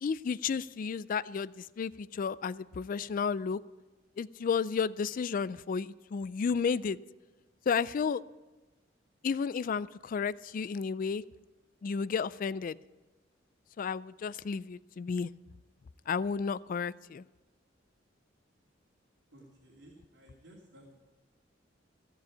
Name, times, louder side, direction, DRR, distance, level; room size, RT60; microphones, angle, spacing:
voice 1, 0.0-3.6 4.2-7.0 7.7-8.2 9.2-11.2 11.8-12.8 13.8-15.3 16.1-17.2, left 6 dB, 45° left, 18 dB, 0.3 m, -32 dB
voice 2, 19.3-21.0, right 1 dB, 70° right, -4 dB, 2.8 m, -56 dB
16.0 x 7.0 x 8.4 m, 1.2 s
head